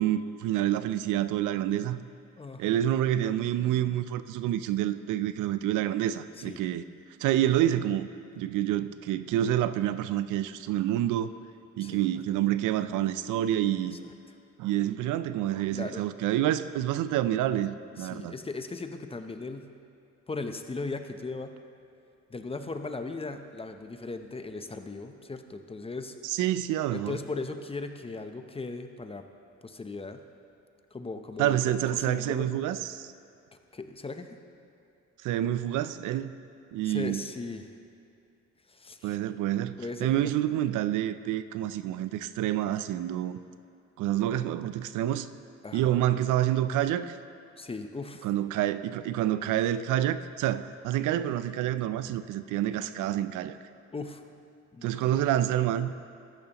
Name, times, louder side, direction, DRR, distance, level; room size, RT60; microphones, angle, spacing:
voice 1, 0.0-2.0 2.6-6.8 7.2-8.1 8.4-11.3 11.8-14.0 14.6-18.3 26.2-27.2 31.4-33.1 35.2-36.3 36.7-37.2 39.0-43.4 44.0-45.3 45.7-47.2 48.2-53.6 54.8-55.9, right 12 dB, 85° right, 13 dB, 0.5 m, -28 dB
voice 2, 2.4-2.8 6.4-6.6 11.8-12.1 13.8-13.9 15.7-16.0 18.0-19.7 20.3-21.5 22.3-26.2 26.9-29.2 29.6-30.2 30.9-31.8 32.1-32.5 33.7-34.4 36.8-37.7 38.7-39.2 39.8-40.3 45.6-46.0 47.6-48.3 53.9-54.2 54.7-55.2, left 3 dB, 20° left, 7 dB, 0.6 m, -38 dB
14.0 x 10.5 x 2.9 m, 2.5 s
cardioid pair, 90°, 30 cm